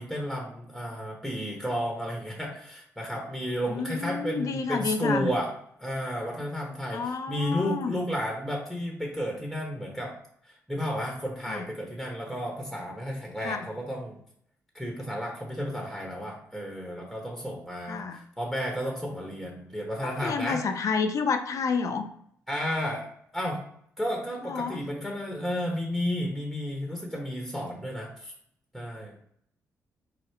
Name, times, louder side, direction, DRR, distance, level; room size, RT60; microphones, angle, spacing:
voice 1, 0.0-5.5 5.8-10.1 10.7-14.2 14.7-20.6 22.5-23.6 24.0-28.3 28.7-29.1, equal, ahead, -1 dB, 1.0 m, -32 dB
voice 2, 3.7-5.3 6.9-7.9 11.5-11.7 13.4-13.7 17.9-18.2 20.0-22.1 24.4-24.8, left 5 dB, 60° left, 7 dB, 0.5 m, -29 dB
4.9 x 2.0 x 4.4 m, 0.66 s
cardioid pair, 80°, 6 cm